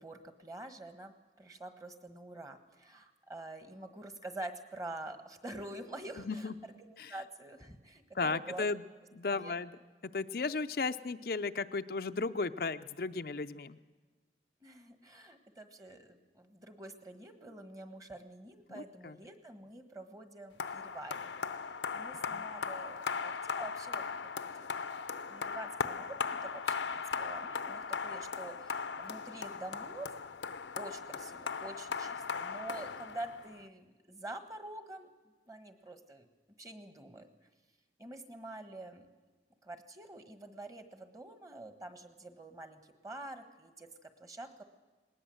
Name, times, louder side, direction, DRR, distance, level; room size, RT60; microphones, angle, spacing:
voice 1, 0.0-8.7 9.2-9.6 14.6-24.3 24.6-24.7 25.2-30.1 30.8-35.1 35.5-36.3 36.6-37.3 38.0-39.1 39.6-44.6, right 2 dB, 20° right, 8 dB, 1.5 m, -47 dB
voice 2, 6.2-6.5 7.0-7.1 8.2-8.8 9.1-9.7 10.1-13.8 18.7-19.2 22.3-22.4, left 4 dB, 55° left, 9 dB, 0.5 m, -35 dB
sound 1, 20.6-33.6, left 5 dB, 90° left, 0.8 m, -38 dB
19.5 x 19.0 x 7.8 m, 1.3 s
head